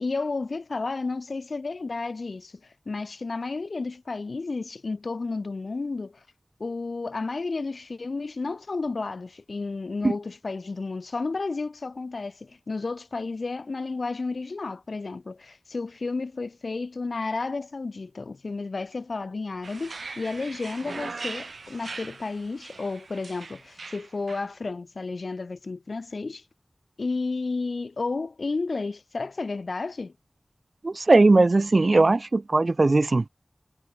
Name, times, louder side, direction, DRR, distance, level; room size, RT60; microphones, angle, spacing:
voice 1, 0.0-2.5 2.9-6.2 6.6-26.4 27.0-30.1, left 3 dB, 70° left, 4.4 m, -32 dB
sound 1, 19.6-24.5, right 4 dB, 85° right, 2.6 m, -40 dB
voice 2, 30.8-33.3, right 2 dB, 50° right, 0.9 m, -19 dB
wide cardioid pair, 70°, 0 cm